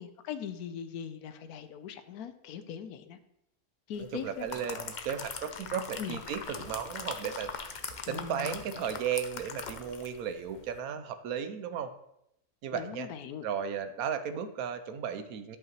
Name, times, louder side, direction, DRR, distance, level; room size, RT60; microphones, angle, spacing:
voice 1, 0.0-3.2 3.9-4.5 6.0-6.2 8.1-8.5 12.7-13.5, left 8 dB, 85° left, 10 dB, 1.1 m, -40 dB
voice 2, 4.0-7.7 8.1-11.9 12.6-13.1 13.4-15.6, right 8 dB, 75° right, 10 dB, 1.0 m, -35 dB
sound 1, 4.2-10.2 10.5-10.7, left 5 dB, 55° left, 0.5 m, -41 dB
11.0 x 5.6 x 3.0 m, 0.80 s
omnidirectional pair, 1.6 m